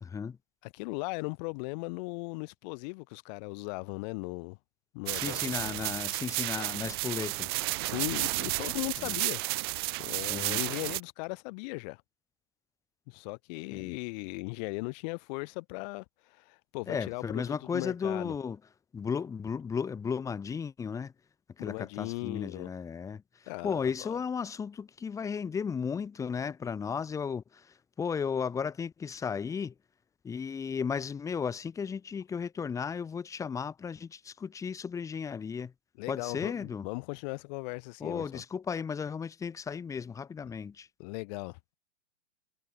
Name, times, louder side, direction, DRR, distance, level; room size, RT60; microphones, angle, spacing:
voice 1, 0.0-0.4 5.1-7.5 9.0-9.2 10.3-10.6 13.7-13.9 16.9-18.6 18.9-21.1 21.6-29.7 30.2-35.7 36.1-36.8 38.0-40.9, left 6 dB, 10° left, 0.9 m, -35 dB
voice 2, 0.6-4.6 4.9-5.4 7.8-9.4 10.0-12.0 13.1-18.3 21.6-22.7 23.5-24.1 36.0-38.4 40.4-40.5 41.0-41.7, left 30 dB, 35° left, 2.1 m, -38 dB
sound 1, 5.1-11.0, right 24 dB, 25° right, 0.4 m, -32 dB
figure-of-eight pair, 115°, 35 cm